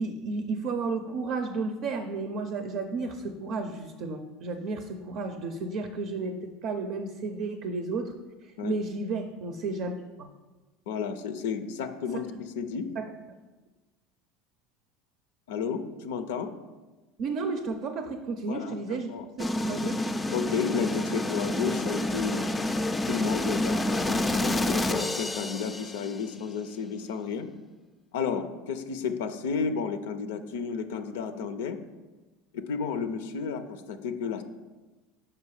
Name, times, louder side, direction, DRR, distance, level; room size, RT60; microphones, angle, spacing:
voice 1, 0.0-8.1 8.4-9.9 10.2-10.3 13.0-13.1 17.2-19.1 19.4-20.0, right 3 dB, 55° right, 7 dB, 0.6 m, -32 dB
voice 2, 10.9-12.9 15.5-16.5 18.5-19.2 20.3-22.4 23.1-27.5 28.1-31.8 32.5-34.4, left 6 dB, 75° left, 9 dB, 0.4 m, -32 dB
sound 1, 19.4-26.3, left 1 dB, 15° left, 0.4 m, -29 dB
5.5 x 4.9 x 4.7 m, 1.2 s
hypercardioid pair, 85°, 0 cm